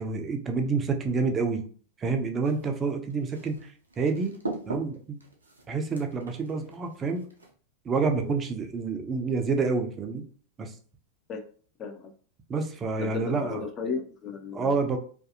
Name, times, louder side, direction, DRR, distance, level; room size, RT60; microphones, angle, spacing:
voice 1, 0.0-1.6 2.0-4.3 4.7-5.2 5.7-7.3 7.8-10.2 10.6-10.7 12.5-13.6 14.5-15.0, right 4 dB, 25° right, 4 dB, 0.4 m, -28 dB
sound 1, 2.4-7.5, right 2 dB, 75° right, 0.5 m, -41 dB
voice 2, 11.8-12.1 13.0-14.8, left 5 dB, 30° left, 5 dB, 0.5 m, -35 dB
2.6 x 2.3 x 2.5 m, 0.43 s
figure-of-eight pair, 90°, 0 cm